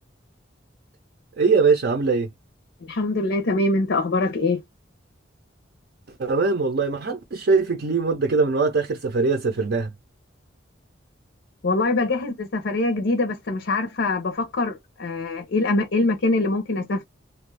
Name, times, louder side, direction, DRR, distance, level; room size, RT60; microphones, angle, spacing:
voice 1, 1.4-2.3 6.2-9.9, right 4 dB, 55° right, 0.5 m, -21 dB
voice 2, 2.8-4.6 11.6-17.0, left 2 dB, 65° left, 0.6 m, -23 dB
2.5 x 2.3 x 3.2 m
head